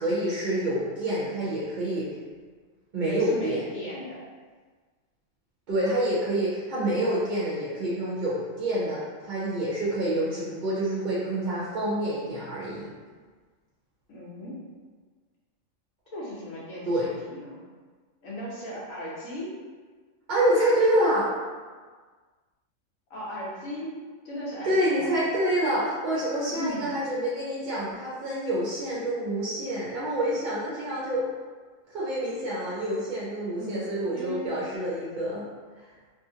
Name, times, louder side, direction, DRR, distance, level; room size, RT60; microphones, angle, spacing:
voice 1, 0.0-2.1 2.9-3.6 5.7-12.9 16.9-17.1 20.3-21.3 24.6-31.2 31.9-35.4, right 1 dB, 50° right, -7 dB, 0.6 m, -27 dB
voice 2, 3.0-4.2 14.1-14.5 16.1-17.6 18.2-19.5 23.1-23.9 24.2-25.1 26.5-26.9 33.5-34.4, equal, 85° left, -7 dB, 1.2 m, -37 dB
2.7 x 2.5 x 2.7 m, 1.5 s
omnidirectional pair, 1.4 m